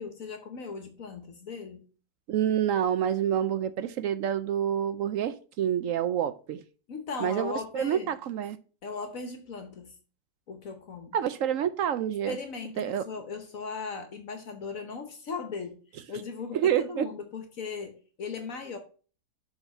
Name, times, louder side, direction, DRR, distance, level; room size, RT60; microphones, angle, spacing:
voice 1, 0.0-1.9 6.9-8.2 8.8-10.0 10.5-11.2 12.3-15.8 16.1-18.8, left 5 dB, 60° left, 1.3 m, -38 dB
voice 2, 2.3-6.6 7.2-8.6 11.1-12.4 12.8-13.0 16.5-17.1, right 9 dB, 70° right, 0.8 m, -28 dB
7.2 x 4.0 x 5.5 m
omnidirectional pair, 1.7 m